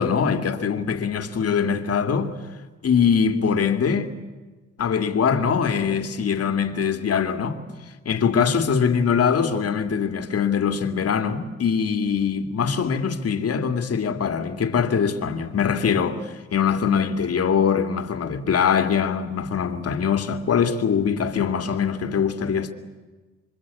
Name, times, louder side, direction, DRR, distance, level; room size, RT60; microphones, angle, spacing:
voice 1, 0.0-2.3 2.8-4.1 4.8-7.6 8.0-22.7, left 6 dB, 50° left, 2.5 m, -22 dB
26.5 x 23.5 x 8.6 m
cardioid pair, 90°, 30 cm